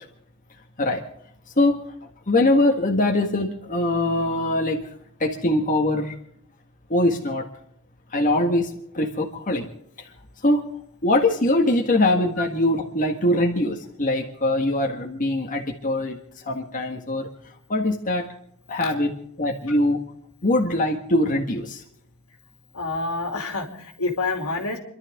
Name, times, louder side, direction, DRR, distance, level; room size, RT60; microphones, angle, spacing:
voice 1, 2.3-4.9 5.2-6.2 6.9-7.4 8.1-9.7 10.0-10.1 10.4-10.7 11.0-18.3 18.7-20.0 20.4-21.8, left 1 dB, 35° left, 1 dB, 1.7 m, -22 dB
voice 2, 22.7-24.8, left 3 dB, 80° left, 3 dB, 2.9 m, -27 dB
29.0 x 12.0 x 3.7 m, 0.70 s
head